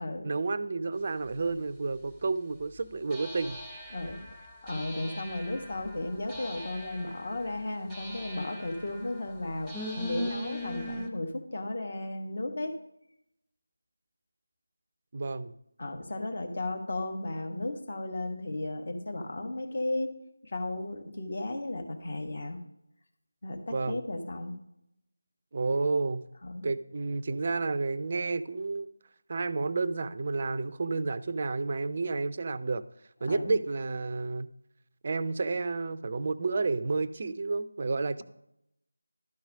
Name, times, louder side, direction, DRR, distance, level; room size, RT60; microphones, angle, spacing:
voice 1, 0.2-3.6 15.1-15.5 23.7-24.0 25.5-26.2 26.6-28.9 29.3-32.8 33.2-34.5 35.0-38.2, right 3 dB, 35° right, 14 dB, 0.4 m, -30 dB
sound 1, 1.5-1.6 3.1-11.1, equal, ahead, 0.8 m, -40 dB
voice 2, 3.9-4.2 4.6-12.8 15.8-20.1 20.4-22.6 23.4-24.6 26.4-26.6 33.3-33.5, left 2 dB, 45° left, 4 dB, 1.3 m, -34 dB
12.0 x 4.7 x 6.3 m, 0.79 s
figure-of-eight pair, 165°, 0 cm